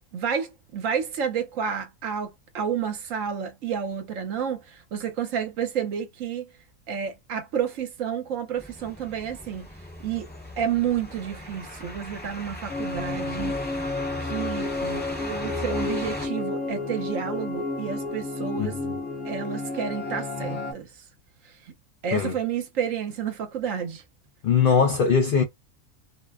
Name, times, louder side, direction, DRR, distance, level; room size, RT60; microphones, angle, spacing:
voice 1, 0.1-6.4 6.9-9.7 10.0-10.3 10.6-13.6 14.2-18.8 19.2-20.9 22.0-24.0, right 8 dB, 65° right, 1.0 m, -30 dB
sound 1, 8.6-16.3, left 1 dB, 10° left, 0.5 m, -38 dB
sound 2, 12.7-20.7, left 2 dB, 55° left, 1.0 m, -31 dB
voice 2, 18.6-19.0 22.1-22.3 24.4-25.4, left 6 dB, 75° left, 0.5 m, -21 dB
2.6 x 2.1 x 2.3 m
omnidirectional pair, 1.5 m